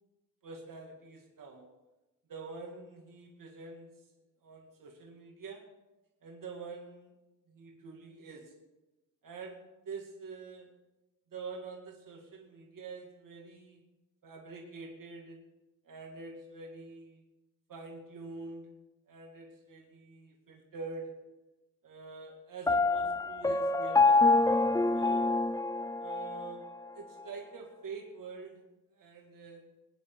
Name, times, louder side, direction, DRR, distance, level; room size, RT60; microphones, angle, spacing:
voice 1, 0.4-1.7 2.3-3.9 4.4-5.6 6.2-7.1 7.5-8.5 9.2-10.7 11.3-13.8 14.2-15.4 15.8-17.2 17.7-18.7 19.1-21.1 21.8-25.3 26.0-26.7 26.9-28.6 28.9-29.6, right 4 dB, 70° right, 0 dB, 2.4 m, -46 dB
Piano, 22.7-26.5, left 3 dB, 10° left, 0.4 m, -26 dB
21.5 x 9.6 x 4.0 m, 1.0 s
wide cardioid pair, 120°, 34 cm